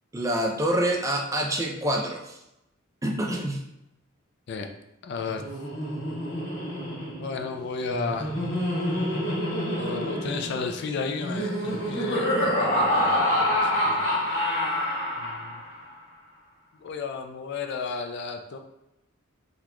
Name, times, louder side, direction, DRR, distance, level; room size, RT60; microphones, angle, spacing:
voice 1, 0.1-2.4 3.0-3.6, right 1 dB, 15° right, 1 dB, 0.4 m, -26 dB
voice 2, 5.0-5.4 7.2-8.3 9.7-14.0 15.2-15.6 16.8-18.6, left 4 dB, 55° left, 6 dB, 0.3 m, -33 dB
Laughter, 5.3-15.8, left 1 dB, 85° left, 1.4 m, -27 dB
3.9 x 2.9 x 2.3 m, 0.86 s
head